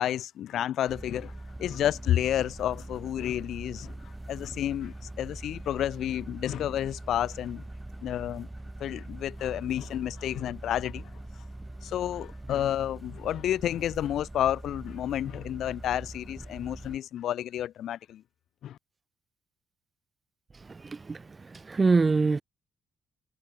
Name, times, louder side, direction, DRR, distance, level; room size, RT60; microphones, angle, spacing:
voice 1, 0.0-7.6 8.0-8.5 8.8-11.4 11.8-18.2 18.6-18.8, left 11 dB, 75° left, 1.3 m, -30 dB
sound 1, 0.9-17.0, right 1 dB, 10° right, 4.5 m, -42 dB
voice 2, 20.7-22.4, right 4 dB, 30° right, 0.3 m, -25 dB
cardioid pair, 90°, 0 cm